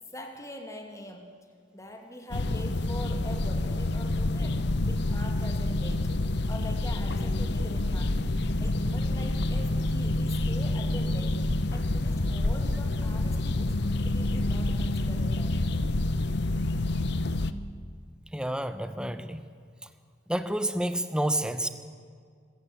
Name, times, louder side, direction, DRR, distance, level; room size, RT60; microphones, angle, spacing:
voice 1, 0.1-1.3 1.7-6.1 6.5-8.2 8.6-11.4 11.7-13.8 14.0-15.6, left 1 dB, 15° left, 4 dB, 2.5 m, -43 dB
sound 1, 2.3-17.5, left 2 dB, 60° left, 0.8 m, -28 dB
voice 2, 18.3-19.4 20.3-21.7, right 1 dB, 5° right, 10 dB, 1.0 m, -29 dB
25.0 x 15.0 x 8.6 m, 2.1 s
head